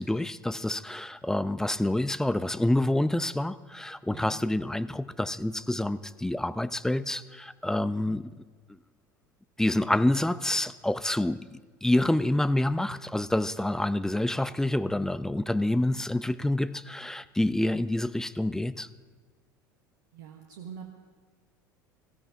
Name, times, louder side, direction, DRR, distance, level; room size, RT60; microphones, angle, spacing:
voice 1, 0.0-8.3 9.6-18.9, left 1 dB, 5° left, 15 dB, 0.4 m, -27 dB
voice 2, 4.1-4.4 20.1-20.9, right 7 dB, 65° right, 3 dB, 1.2 m, -44 dB
18.5 x 14.5 x 3.6 m, 1.5 s
figure-of-eight pair, 70°, 11 cm